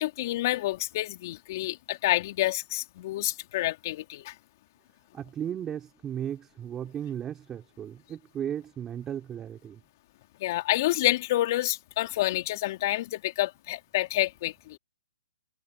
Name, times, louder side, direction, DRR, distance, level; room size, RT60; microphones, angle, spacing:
voice 1, 0.0-4.3 10.4-14.8, left 16 dB, 45° left, 2.9 m, -28 dB
voice 2, 5.1-9.8, right 9 dB, 15° right, 4.9 m, -35 dB
hypercardioid pair, 145°, 3 cm